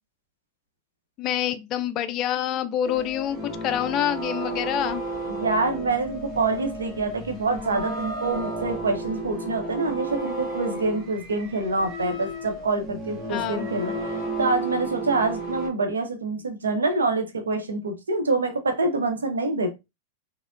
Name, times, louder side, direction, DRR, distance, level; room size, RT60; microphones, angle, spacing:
voice 1, 1.2-5.0 13.3-13.6, left 10 dB, 35° left, 0.4 m, -27 dB
sound 1, 2.9-15.7, right 2 dB, 20° right, 1.3 m, -33 dB
voice 2, 5.3-13.9 14.4-19.8, right 3 dB, 70° right, 0.7 m, -26 dB
4.1 x 2.1 x 2.4 m
figure-of-eight pair, 90°, 0 cm